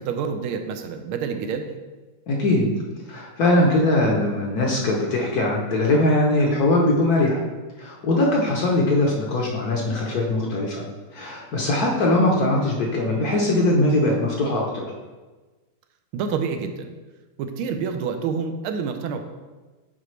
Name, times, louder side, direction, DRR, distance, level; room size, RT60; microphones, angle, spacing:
voice 1, 0.0-1.7 16.1-16.9 17.4-19.2, right 6 dB, 80° right, 6 dB, 1.4 m, -28 dB
voice 2, 2.3-2.7 3.1-7.4 7.8-10.9 11.1-14.9, left 1 dB, 60° left, -1 dB, 1.1 m, -21 dB
8.0 x 4.9 x 3.2 m, 1.2 s
omnidirectional pair, 2.3 m